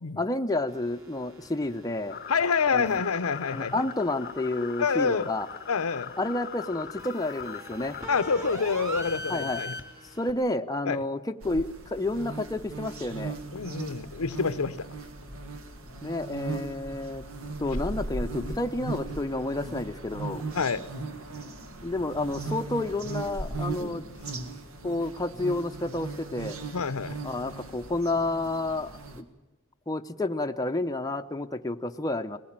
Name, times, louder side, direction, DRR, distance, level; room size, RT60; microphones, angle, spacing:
voice 1, 0.2-2.2 2.7-3.0 3.5-5.5 6.2-8.0 9.3-9.6 10.2-13.4 16.0-17.2 17.6-20.5 21.8-24.0 24.8-26.6 27.2-29.3 29.9-32.4, left 2 dB, 15° left, 6 dB, 0.7 m, -30 dB
sound 1, 0.7-10.3, equal, 15° right, 3.3 m, -43 dB
sound 2, 2.1-8.5, left 8 dB, 45° left, 0.8 m, -41 dB
voice 2, 2.3-3.8 4.8-5.3 5.7-6.1 8.1-9.8 10.9-11.0 13.5-14.9 16.6-16.7 20.5-20.8 23.8-24.1 26.7-27.2, left 5 dB, 75° left, 14 dB, 0.7 m, -27 dB
sound 3, 11.4-29.2, right 3 dB, 70° right, 1.8 m, -38 dB
21.0 x 18.0 x 8.8 m, 1.0 s
head